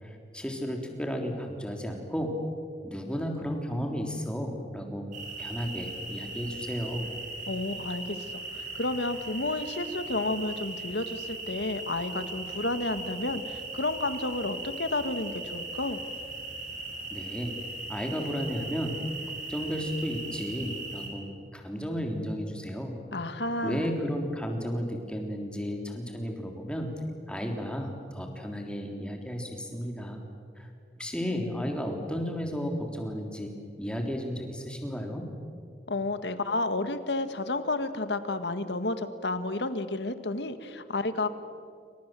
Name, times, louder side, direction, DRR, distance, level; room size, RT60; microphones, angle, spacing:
voice 1, 0.0-2.3 2.8-5.0 5.4-7.1 17.1-17.6 17.9-19.0 19.5-21.2 21.5-23.0 23.6-26.9 27.3-30.2 30.6-30.7 31.0-33.5 33.8-35.2, equal, 5° left, 2 dB, 3.5 m, -33 dB
sound 1, 5.1-21.1, right 3 dB, 45° right, 5.7 m, -39 dB
voice 2, 7.5-16.0 23.1-23.9 35.9-41.3, left 2 dB, 85° left, 10 dB, 1.8 m, -31 dB
29.0 x 25.5 x 7.7 m, 2.3 s
head